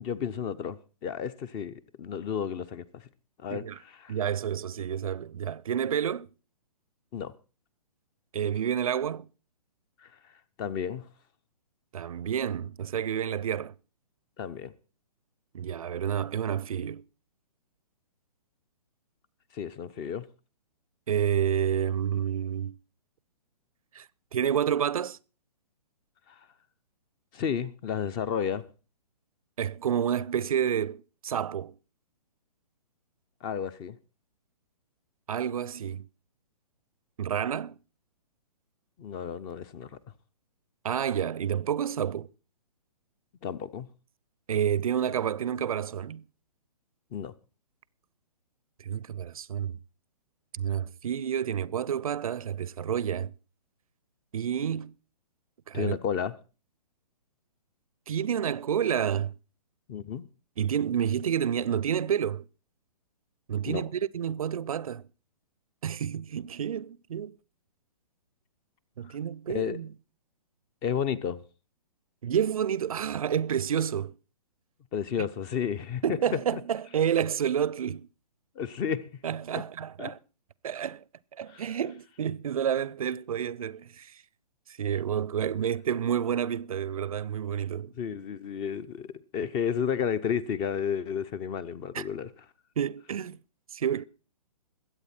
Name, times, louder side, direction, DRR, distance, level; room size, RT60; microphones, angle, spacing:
voice 1, 0.0-3.0 3.4-4.1 7.1-7.3 10.0-10.1 10.6-11.0 14.4-14.7 19.5-20.3 26.3-26.4 27.3-28.6 33.4-34.0 39.0-39.9 43.4-43.9 47.1-47.3 55.7-56.3 59.9-60.3 63.7-63.8 69.5-69.8 70.8-71.4 74.9-76.2 76.5-76.6 78.6-79.1 80.0-80.1 81.5-81.6 87.9-92.3, left 7 dB, 20° left, 0.6 m, -32 dB
voice 2, 4.1-6.3 8.3-9.3 11.9-13.7 15.5-17.0 21.1-22.8 23.9-24.0 24.3-25.2 29.6-31.7 35.3-36.1 37.2-37.8 40.8-42.3 44.5-46.2 48.8-49.8 50.5-53.3 54.3-54.9 55.7-56.0 58.1-59.3 60.6-62.4 63.5-65.0 65.8-67.3 69.0-69.9 72.2-74.1 75.2-75.3 76.0-78.1 79.2-80.2 80.6-81.0 81.4-84.2 84.8-87.9 91.9-92.1 92.8-93.4 93.7-94.0, right 9 dB, 60° right, 0.6 m, -29 dB
22.0 x 8.3 x 4.3 m
figure-of-eight pair, 130°, 21 cm